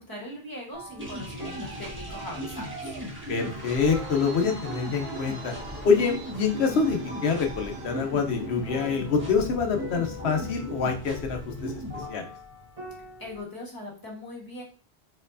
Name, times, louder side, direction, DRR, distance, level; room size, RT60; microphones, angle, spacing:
voice 1, 0.0-2.9 13.2-14.6, left 1 dB, 20° left, -3 dB, 1.5 m, -40 dB
sound 1, 0.7-13.4, equal, 35° right, 1.2 m, -44 dB
sound 2, 1.0-12.1, equal, 10° right, 1.2 m, -37 dB
Traffic noise roadway noise, 1.0-8.8, right 4 dB, 70° right, 1.0 m, -46 dB
voice 2, 3.3-5.5 5.8-12.3, left 5 dB, 85° left, 4 dB, 1.1 m, -26 dB
4.3 x 3.9 x 2.7 m, 0.37 s
omnidirectional pair, 1.1 m